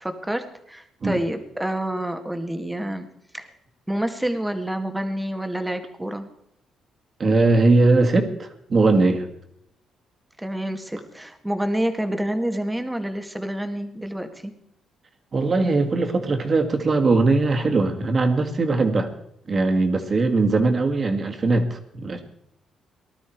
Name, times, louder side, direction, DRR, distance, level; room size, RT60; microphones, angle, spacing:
voice 1, 0.0-3.1 3.3-3.5 3.9-6.3 10.4-14.5, right 1 dB, 10° right, 7 dB, 1.8 m, -28 dB
voice 2, 7.2-9.3 15.3-19.1 19.5-22.2, right 3 dB, 40° right, 5 dB, 2.1 m, -20 dB
19.0 x 12.5 x 4.6 m, 0.75 s
cardioid pair, 90°, 0 cm